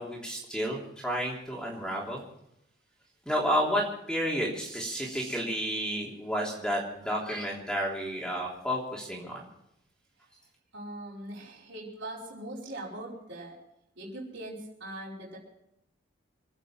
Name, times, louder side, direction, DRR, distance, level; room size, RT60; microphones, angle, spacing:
voice 1, 0.0-2.2 3.2-9.4, equal, 5° left, -2 dB, 3.1 m, -31 dB
voice 2, 10.7-13.6 13.9-15.4, right 1 dB, 55° right, -6 dB, 4.9 m, -41 dB
26.5 x 8.9 x 5.9 m, 0.80 s
head